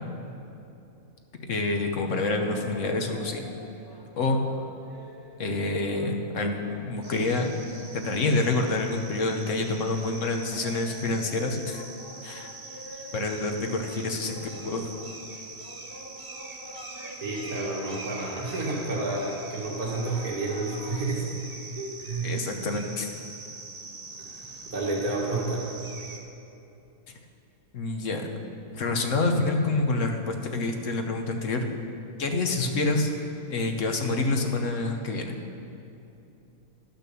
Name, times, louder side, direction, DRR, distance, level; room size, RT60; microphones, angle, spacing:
voice 1, 1.5-3.4 4.2-4.4 5.4-7.5 7.9-11.8 12.2-12.5 13.1-14.9 22.2-23.1 27.7-28.3 28.7-31.7 32.2-33.1 33.5-35.4, left 2 dB, 60° left, 4 dB, 1.2 m, -27 dB
sound 1, 2.1-21.0, left 2 dB, 25° left, 0.5 m, -48 dB
sound 2, 7.0-26.2, right 3 dB, 30° right, 0.9 m, -43 dB
voice 2, 17.2-21.3 21.8-22.3 24.7-25.7, right 2 dB, 85° right, -3 dB, 2.3 m, -30 dB
12.5 x 5.9 x 6.8 m, 2.8 s
omnidirectional pair, 1.5 m